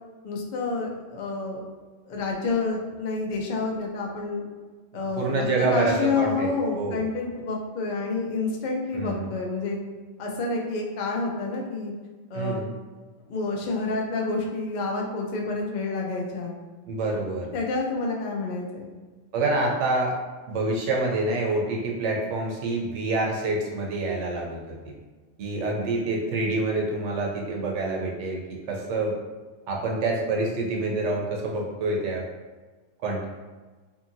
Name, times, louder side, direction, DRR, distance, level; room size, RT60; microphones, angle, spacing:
voice 1, 0.2-1.6 2.1-4.4 4.9-9.8 10.2-11.9 12.3-12.6 13.3-16.5 17.5-18.9, left 3 dB, 65° left, -1 dB, 0.4 m, -28 dB
voice 2, 5.2-6.5 6.8-7.0 8.9-9.3 12.3-12.7 16.9-17.5 19.3-20.1 20.5-24.9 25.4-28.4 28.7-29.1 29.7-32.2 33.0-33.3, right 2 dB, 70° right, -1 dB, 0.9 m, -27 dB
2.7 x 2.6 x 2.5 m, 1.3 s
omnidirectional pair, 1.3 m